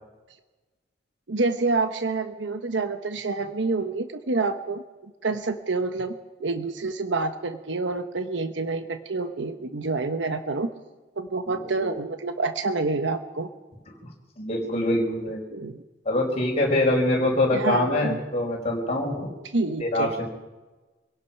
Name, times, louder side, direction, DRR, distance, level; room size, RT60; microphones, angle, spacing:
voice 1, 1.3-6.1 6.4-10.7 11.2-13.5 15.5-15.8 17.5-18.2 19.5-20.1, right 3 dB, 75° right, 8 dB, 1.1 m, -28 dB
voice 2, 14.4-15.4 16.0-19.3 19.8-20.2, left 1 dB, 35° left, -2 dB, 5.0 m, -24 dB
25.5 x 17.5 x 5.9 m, 1.2 s
head